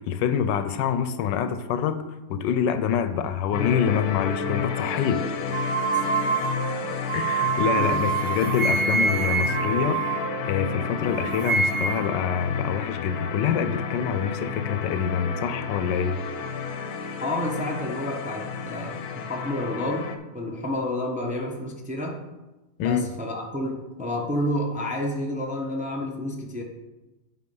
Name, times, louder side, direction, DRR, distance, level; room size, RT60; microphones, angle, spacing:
voice 1, 0.0-2.0 2.3-5.3 7.1-16.2 22.8-23.1, left 7 dB, 85° left, 1.3 m, -26 dB
sound 1, 3.5-20.2, left 6 dB, 65° left, 1.1 m, -31 dB
sound 2, 5.5-10.8 11.1-12.2, right 5 dB, 75° right, 0.6 m, -26 dB
voice 2, 17.2-22.2 22.8-26.6, left 1 dB, 10° right, 0.4 m, -30 dB
8.4 x 4.9 x 5.3 m
omnidirectional pair, 1.9 m